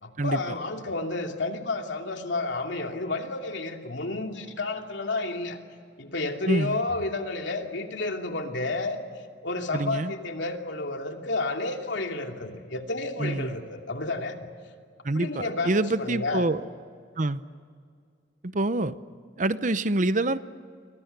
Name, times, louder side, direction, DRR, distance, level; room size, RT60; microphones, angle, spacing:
voice 1, 0.0-5.6 6.0-9.0 9.4-14.5 15.1-16.4, left 2 dB, 80° left, 3 dB, 2.8 m, -31 dB
voice 2, 6.5-6.8 9.7-10.1 13.2-13.6 15.0-16.7 17.2-17.4 18.4-18.9 19.4-20.4, right 2 dB, 45° right, 14 dB, 0.8 m, -26 dB
30.0 x 24.0 x 6.8 m, 2.1 s
head